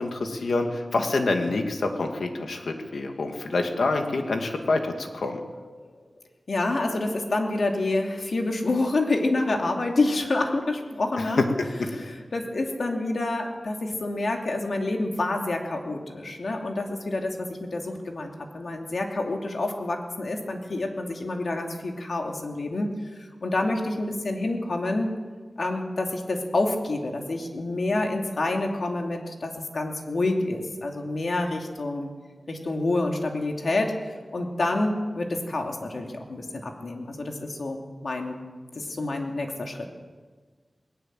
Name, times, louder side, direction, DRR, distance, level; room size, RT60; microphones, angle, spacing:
voice 1, 0.0-5.4 11.2-11.9, left 3 dB, 85° left, 4 dB, 2.3 m, -27 dB
voice 2, 6.5-11.4 11.9-22.9 23.4-25.1 25.6-32.1 32.5-33.9 34.3-38.4 38.7-39.9, left 2 dB, 65° left, 2 dB, 2.7 m, -28 dB
19.5 x 18.5 x 7.7 m, 1.5 s
wide cardioid pair, 100°, 0 cm